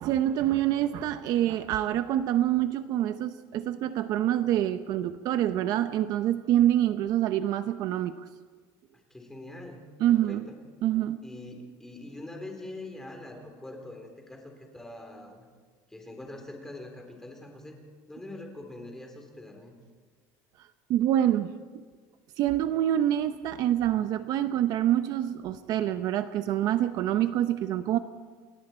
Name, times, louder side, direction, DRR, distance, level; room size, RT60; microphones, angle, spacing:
voice 1, 0.0-8.1 10.0-10.4 10.8-11.2 20.9-21.8 22.4-28.0, right 12 dB, 50° right, 10 dB, 0.8 m, -26 dB
voice 2, 8.9-10.6 11.2-15.5 15.9-17.8 18.1-19.8, left 2 dB, 5° left, 2 dB, 3.6 m, -44 dB
29.5 x 21.5 x 4.5 m, 1.5 s
cardioid pair, 165°, 8 cm